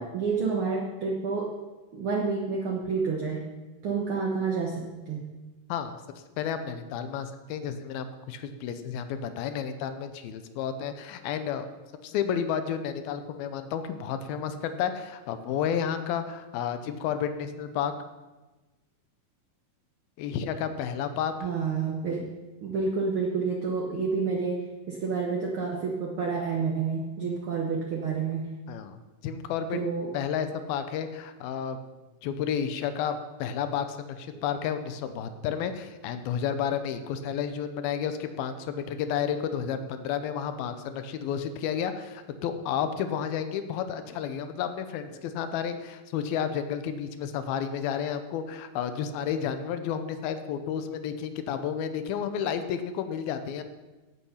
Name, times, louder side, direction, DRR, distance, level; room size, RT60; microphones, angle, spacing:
voice 1, 0.0-1.5 1.9-3.5 3.8-5.3 21.4-22.2 22.6-28.4 29.7-30.1, right 5 dB, 60° right, -1 dB, 1.4 m, -29 dB
voice 2, 6.4-11.7 12.0-17.9 20.2-21.3 28.7-29.0 29.2-29.8 30.1-31.8 32.2-53.6, left 8 dB, 90° left, 9 dB, 2.8 m, -31 dB
15.5 x 8.6 x 5.7 m, 1.2 s
omnidirectional pair, 4.2 m